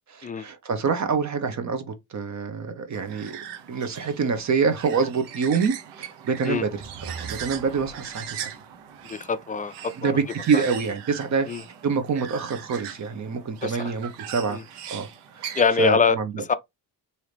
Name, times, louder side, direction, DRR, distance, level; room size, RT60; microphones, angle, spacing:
voice 1, 0.1-3.4 3.7-6.7 7.0-8.5 10.0-11.5 11.8-14.6 14.9-15.1 15.3-16.4, right 5 dB, 45° right, 1.0 m, -26 dB
sound 1, 2.9-15.7, right 9 dB, 90° right, 1.0 m, -40 dB
sound 2, 6.5-8.4, right 5 dB, 25° right, 1.8 m, -42 dB
voice 2, 9.1-10.1 10.5-10.6 11.5-11.6 13.6-13.9 14.5-14.6 15.6-16.5, left 5 dB, 20° left, 0.4 m, -24 dB
4.7 x 2.8 x 3.3 m
cardioid pair, 95°, 40 cm